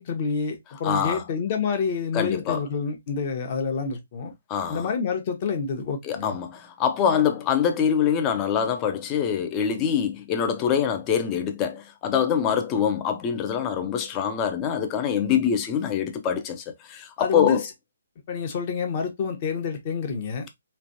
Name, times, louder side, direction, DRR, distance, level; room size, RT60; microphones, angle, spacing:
voice 1, 0.0-4.3 4.7-6.3 17.2-17.6 18.3-20.5, left 5 dB, 40° left, 1.0 m, -28 dB
voice 2, 0.8-1.2 2.1-2.6 4.5-4.9 6.0-17.6, left 8 dB, 25° left, 0.6 m, -24 dB
3.2 x 2.5 x 2.6 m
figure-of-eight pair, 140°, 0 cm